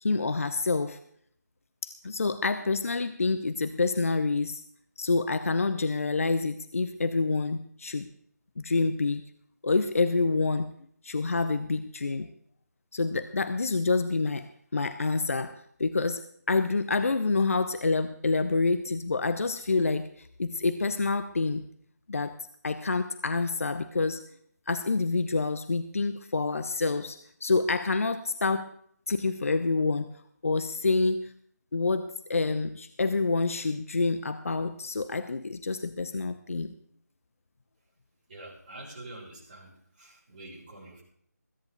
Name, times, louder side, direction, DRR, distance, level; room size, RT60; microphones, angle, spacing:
voice 1, 0.0-1.0 1.8-4.6 5.0-8.1 8.6-9.3 9.6-10.7 11.0-12.3 12.9-14.5 14.7-16.2 16.5-21.6 22.1-22.3 22.6-24.2 24.7-28.7 29.1-30.1 30.4-31.3 31.7-36.7, left 3 dB, 50° left, 11 dB, 0.9 m, -27 dB
voice 2, 38.3-41.0, right 2 dB, 30° right, -4 dB, 6.1 m, -46 dB
21.0 x 10.5 x 4.0 m, 0.63 s
figure-of-eight pair, 160°, 9 cm